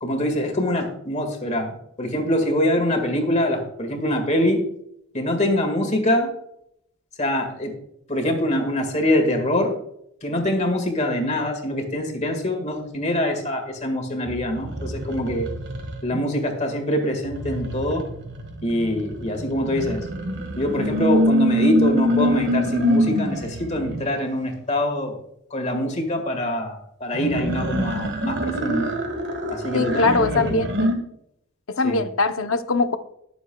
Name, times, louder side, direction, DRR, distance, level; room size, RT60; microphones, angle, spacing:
voice 1, 0.0-4.6 5.1-6.3 7.2-7.7 8.1-9.7 10.2-15.5 16.0-18.1 18.6-20.1 20.6-25.2 25.5-28.9 29.5-30.6 31.8-32.0, left 1 dB, 30° left, 4 dB, 1.8 m, -24 dB
sound 1, 14.3-16.2 17.2-24.1 27.1-30.9, equal, 50° right, 1.6 m, -25 dB
voice 2, 29.7-30.9 31.8-33.0, left 3 dB, 65° left, 9 dB, 0.7 m, -21 dB
20.5 x 7.1 x 2.3 m, 0.74 s
head